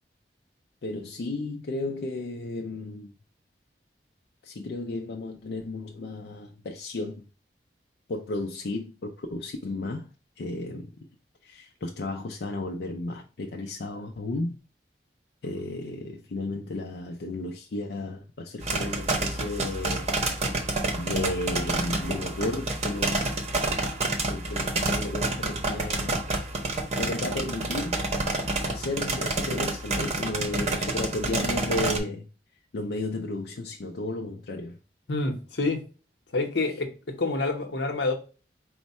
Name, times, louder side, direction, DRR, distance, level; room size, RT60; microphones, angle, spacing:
voice 1, 0.8-3.1 4.4-7.3 8.1-10.1 10.4-10.9 11.4-14.6 15.4-20.1 20.9-23.3 24.3-26.4 27.0-28.0 28.6-32.3 32.7-34.8, left 2 dB, 65° left, 0.4 m, -33 dB
sound 1, 18.6-32.0, right 2 dB, 35° right, 0.7 m, -28 dB
voice 2, 35.1-35.8 36.3-38.1, left 3 dB, 85° left, 0.9 m, -27 dB
4.4 x 2.1 x 4.1 m
head